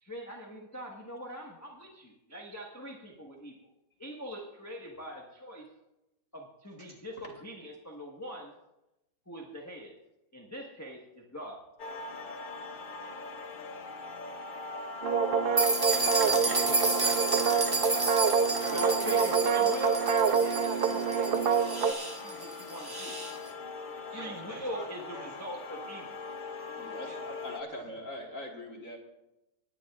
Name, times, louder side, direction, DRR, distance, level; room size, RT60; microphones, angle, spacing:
voice 1, 0.0-3.6 4.0-5.7 6.3-8.5 9.3-10.0 10.3-11.6 18.7-23.2 24.1-26.2, equal, 10° left, -1 dB, 1.2 m, -42 dB
sound 1, 11.8-27.6, left 3 dB, 65° left, 0.5 m, -42 dB
sound 2, 15.0-21.9, right 6 dB, 80° right, 0.5 m, -27 dB
voice 2, 15.4-19.4 24.1-25.3 27.0-27.2, equal, 55° right, -3 dB, 5.9 m, -46 dB
sound 3, 15.6-23.3, right 2 dB, 15° right, 1.3 m, -31 dB
voice 3, 26.8-29.0, left 1 dB, 45° left, 0 dB, 1.9 m, -42 dB
27.0 x 10.5 x 2.4 m, 0.93 s
omnidirectional pair, 1.9 m